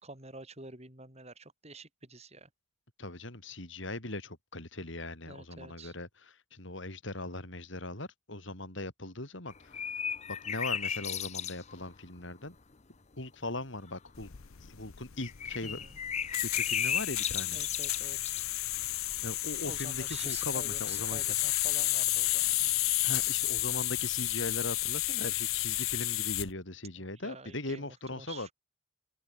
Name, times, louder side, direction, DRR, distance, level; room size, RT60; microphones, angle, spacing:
voice 1, 0.0-2.5 5.2-5.9 15.6-16.0 16.9-17.0 17.5-18.4 19.6-22.7 26.9-28.5, right 3 dB, 30° right, 5.0 m, -48 dB
voice 2, 3.0-6.1 6.5-9.8 10.3-12.6 13.2-14.3 14.7-15.8 16.4-17.6 19.2-21.2 23.0-28.5, left 2 dB, 60° left, 3.8 m, -39 dB
sound 1, 9.5-11.9 12.2-12.3 12.7-12.8 13.9-14.2 15.2-18.4 20.2-20.3, left 8 dB, 35° left, 0.8 m, -35 dB
sound 2, 14.2-26.5, left 17 dB, 80° left, 0.8 m, -32 dB
open air
head